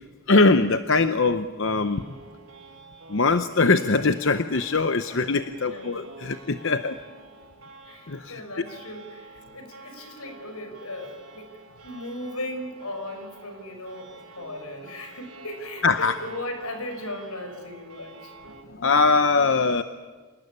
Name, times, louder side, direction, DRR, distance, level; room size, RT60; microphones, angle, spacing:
voice 1, 0.3-2.1 3.1-7.0 8.1-8.6 15.8-16.2 18.8-19.8, left 3 dB, 55° left, 10 dB, 0.8 m, -22 dB
sound 1, 1.7-18.6, right 3 dB, 70° right, 6.7 m, -48 dB
voice 2, 5.6-6.1 7.8-11.5 11.8-18.3, left 1 dB, 80° left, 7 dB, 5.5 m, -37 dB
28.0 x 19.0 x 9.9 m, 1.4 s
head